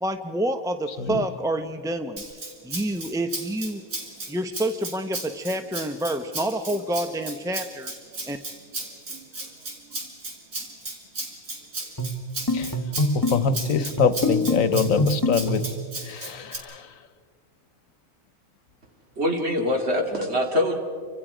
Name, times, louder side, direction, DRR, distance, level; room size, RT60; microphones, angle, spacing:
voice 1, 0.0-2.2 2.6-3.8 4.3-7.9 8.3-8.4, right 1 dB, 5° right, 8 dB, 0.4 m, -28 dB
Rattle (instrument), 2.2-16.6, right 2 dB, 85° right, 3.4 m, -35 dB
sound 1, 12.0-15.8, left 1 dB, 15° left, 1.1 m, -26 dB
voice 2, 13.3-15.6 16.1-16.8, left 7 dB, 75° left, 12 dB, 1.4 m, -24 dB
voice 3, 19.2-20.8, left 1 dB, 50° right, 2 dB, 2.7 m, -24 dB
29.0 x 25.5 x 5.0 m, 2.1 s
omnidirectional pair, 1.4 m